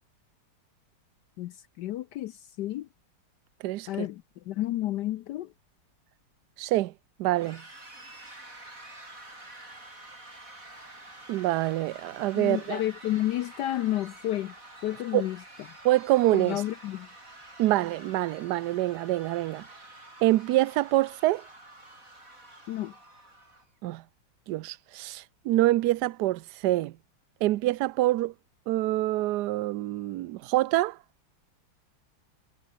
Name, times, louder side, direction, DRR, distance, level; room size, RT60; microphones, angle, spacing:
voice 1, 1.4-2.9 3.9-5.5 12.3-14.5 14.8-15.4 16.3-17.1 22.7-22.9, left 14 dB, 75° left, 1.0 m, -31 dB
voice 2, 3.6-4.1 6.6-6.9 7.2-7.6 11.3-12.8 15.1-15.3 15.8-16.6 17.6-19.6 20.2-21.4 23.8-24.0 24.5-26.9 27.4-28.3 28.7-31.0, right 16 dB, 75° right, 0.9 m, -26 dB
sound 1, 7.4-23.7, right 2 dB, 40° right, 7.9 m, -48 dB
omnidirectional pair, 2.3 m